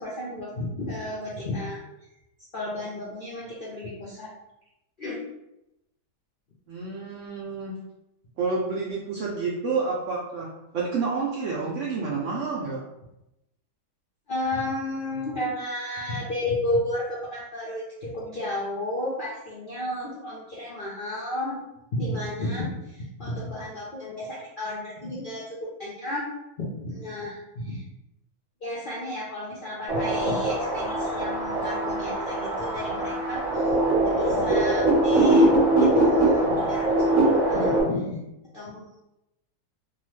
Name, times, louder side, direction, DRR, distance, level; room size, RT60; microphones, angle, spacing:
voice 1, 0.0-1.8 2.5-4.3 5.0-5.2 14.3-21.6 21.9-26.2 26.6-27.8 28.6-33.7 34.1-35.5 35.8-36.9 37.2-38.1 38.5-38.9, left 1 dB, 75° left, -6 dB, 0.4 m, -32 dB
voice 2, 6.7-7.7 8.4-10.5 10.7-12.8, right 4 dB, 70° right, -4 dB, 0.7 m, -29 dB
sound 1, 29.9-37.8, right 1 dB, 30° right, 0.8 m, -22 dB
2.7 x 2.3 x 3.1 m, 0.89 s
omnidirectional pair, 1.8 m